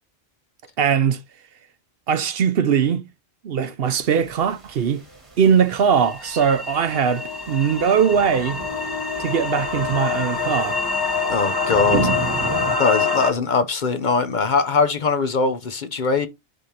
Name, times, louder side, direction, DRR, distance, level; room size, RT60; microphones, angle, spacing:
voice 1, 0.8-1.2 2.1-3.1 3.4-5.0 5.4-8.6 9.2-10.8 11.9-12.1, right 7 dB, 65° right, 0.9 m, -20 dB
sound 1, 3.8-12.8, right 4 dB, 30° right, 1.2 m, -35 dB
sound 2, 6.0-13.3, left 4 dB, 20° left, 1.0 m, -25 dB
voice 2, 11.3-12.0 12.8-16.3, left 4 dB, 50° left, 0.8 m, -21 dB
10.5 x 3.5 x 2.9 m
omnidirectional pair, 1.1 m